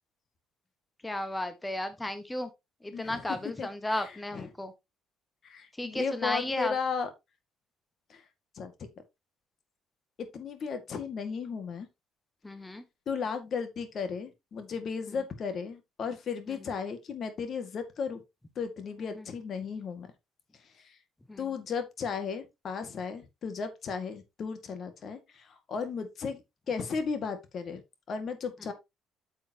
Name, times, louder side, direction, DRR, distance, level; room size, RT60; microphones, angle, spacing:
voice 1, 1.0-2.5 2.8-4.7 5.8-6.7 12.4-12.8 15.1-15.2 16.5-16.6 19.0-19.2 21.3-21.5, left 1 dB, 15° left, 1.4 m, -34 dB
voice 2, 2.9-3.2 3.6-4.1 4.3-4.5 5.4-7.1 8.1-8.2 8.6-8.9 10.3-11.9 13.1-18.2 18.6-20.1 21.4-26.4 26.7-27.8 28.1-28.7, left 5 dB, 55° left, 2.1 m, -35 dB
8.8 x 7.2 x 3.0 m
hypercardioid pair, 60°, 0 cm